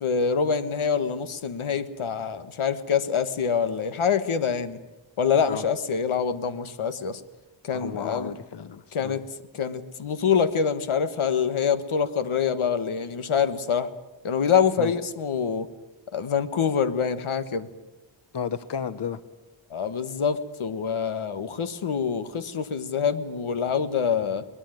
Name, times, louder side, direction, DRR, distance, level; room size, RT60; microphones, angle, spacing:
voice 1, 0.0-4.8 5.2-7.2 7.6-8.3 8.9-9.2 9.5-13.9 14.2-15.7 16.1-17.7 19.7-24.5, left 6 dB, 90° left, 11 dB, 1.5 m, -25 dB
voice 2, 7.7-9.2 14.8-14.9 18.3-19.2, left 7 dB, 60° left, 13 dB, 1.0 m, -33 dB
23.0 x 20.0 x 9.1 m, 1.1 s
wide cardioid pair, 140°, 48 cm